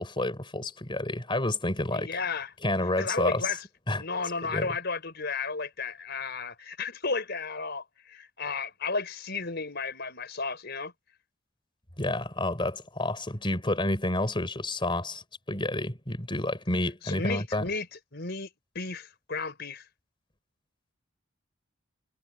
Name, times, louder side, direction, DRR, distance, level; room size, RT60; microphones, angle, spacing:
voice 1, 0.0-2.1 2.6-3.4 3.9-4.0 4.4-4.7 12.0-17.6, left 1 dB, 25° left, 4.3 m, -29 dB
voice 2, 1.9-2.5 3.0-3.6 4.0-10.9 17.0-17.9 18.1-18.5 18.7-19.9, left 4 dB, 55° left, 4.7 m, -33 dB
head